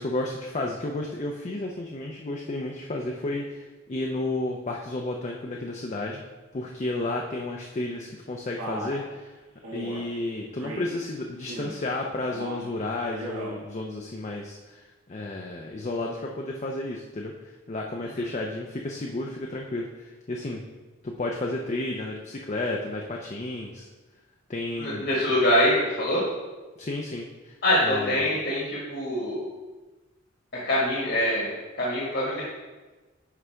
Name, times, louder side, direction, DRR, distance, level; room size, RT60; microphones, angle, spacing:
voice 1, 0.0-6.2 6.5-9.3 9.7-17.3 17.7-20.6 21.0-23.9 24.5-25.1 26.8-27.5 27.8-28.2, left 2 dB, 35° left, 0 dB, 0.5 m, -32 dB
Male speech man speaking, 8.6-9.0 9.6-10.0 10.6-11.0 11.4-11.9 12.3-12.7 13.1-13.6, right 1 dB, 85° right, 1.5 m, -37 dB
voice 2, 24.8-26.2 27.6-29.4 30.6-31.5 31.8-32.4, left 1 dB, 55° left, -5 dB, 1.5 m, -24 dB
9.5 x 4.9 x 3.3 m, 1.2 s
head